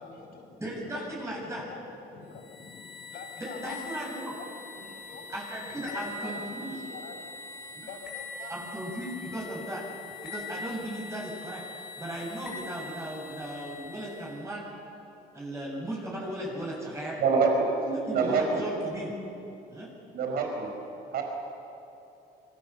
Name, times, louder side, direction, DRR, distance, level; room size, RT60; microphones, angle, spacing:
voice 1, 0.0-4.0 4.3-4.5 4.7-5.3 5.7-6.4 6.9-7.2 7.8-8.5, left 5 dB, 60° left, 3 dB, 5.4 m, -45 dB
voice 2, 0.6-1.6 3.4-4.4 5.3-6.8 7.8-7.9 8.5-9.8 10.2-11.6 12.0-14.6 15.3-17.2 18.1-19.1 19.7-19.9, right 1 dB, 15° right, -4 dB, 7.6 m, -36 dB
sound 1, 2.3-14.4, left 3 dB, 80° left, 6.5 m, -43 dB
voice 3, 17.2-18.6 20.1-20.7 21.1-21.2, right 4 dB, 65° right, 3 dB, 4.9 m, -26 dB
27.5 x 24.0 x 7.2 m, 2.9 s
cardioid pair, 110°, 17 cm